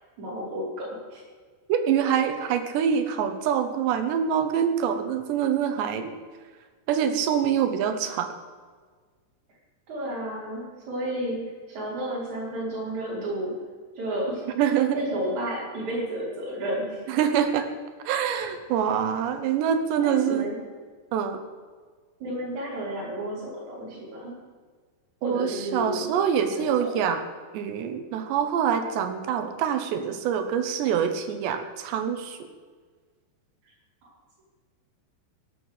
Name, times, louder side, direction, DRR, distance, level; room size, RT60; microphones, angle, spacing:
voice 1, 0.2-1.2 9.9-13.6 14.0-14.5 14.9-17.1 20.0-20.6 22.2-24.4 25.2-26.1 26.5-26.9 34.0-34.1, right 1 dB, 40° right, -5 dB, 6.0 m, -32 dB
voice 2, 1.7-6.1 6.9-8.3 14.6-15.1 17.1-17.7 18.1-20.5 21.1-21.4 25.2-27.2 27.5-32.4, right 8 dB, 75° right, 7 dB, 3.5 m, -25 dB
17.5 x 9.1 x 8.3 m, 1.5 s
omnidirectional pair, 5.1 m